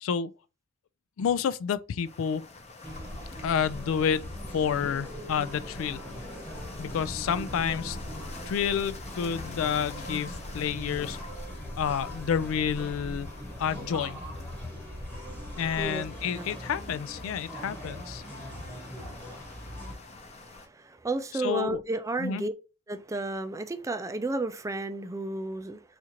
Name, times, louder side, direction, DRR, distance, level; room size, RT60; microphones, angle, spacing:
voice 1, 0.0-0.3 1.2-2.4 3.4-4.2 4.5-6.0 6.8-8.0 8.5-11.2 11.8-13.3 13.6-14.2 15.6-18.2 21.4-21.8 22.2-22.4, left 7 dB, 90° left, 0.3 m, -29 dB
sound 1, 2.0-20.7, left 3 dB, 35° left, 0.6 m, -47 dB
sound 2, 2.8-19.9, equal, 10° left, 1.1 m, -40 dB
voice 2, 6.4-6.9 8.2-8.5 14.6-16.0 16.3-16.7 18.3-22.5 22.9-25.8, right 2 dB, 15° right, 0.4 m, -35 dB
4.2 x 2.5 x 2.9 m
head